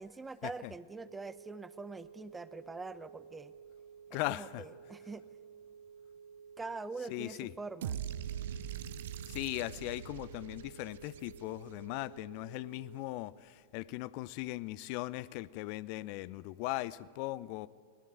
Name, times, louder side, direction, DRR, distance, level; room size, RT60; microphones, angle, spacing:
voice 1, 0.0-3.5 4.3-5.3 6.6-8.0, right 3 dB, 10° right, 15 dB, 0.7 m, -44 dB
sound 1, 0.9-13.0, right 7 dB, 85° left, 6.6 m, -54 dB
voice 2, 4.1-4.6 7.1-7.5 9.3-17.7, left 18 dB, 45° left, 19 dB, 0.6 m, -39 dB
sound 2, 7.8-11.9, right 9 dB, 55° right, 0.9 m, -42 dB
21.5 x 18.0 x 9.2 m, 2.1 s
figure-of-eight pair, 90°, 0 cm